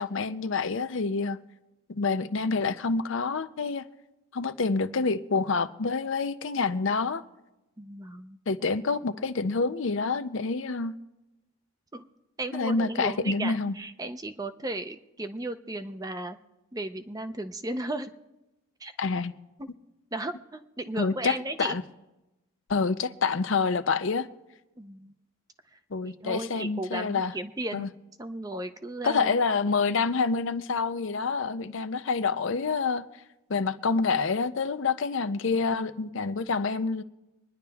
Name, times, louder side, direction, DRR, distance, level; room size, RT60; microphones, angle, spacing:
voice 1, 0.0-1.4 1.9-3.9 4.3-7.2 8.5-10.9 12.5-13.7 19.0-19.3 20.9-21.8 22.7-24.3 25.9-27.3 27.7-27.9 29.0-33.0 33.5-37.0, left 4 dB, 60° left, 11 dB, 0.5 m, -27 dB
voice 2, 7.8-8.4 11.9-12.1 12.4-16.4 16.7-18.1 18.8-18.9 19.6-19.7 20.1-21.8 24.8-25.1 26.0-27.9 28.2-29.3, right 2 dB, 15° right, 9 dB, 0.5 m, -35 dB
25.0 x 10.5 x 3.5 m, 0.99 s
head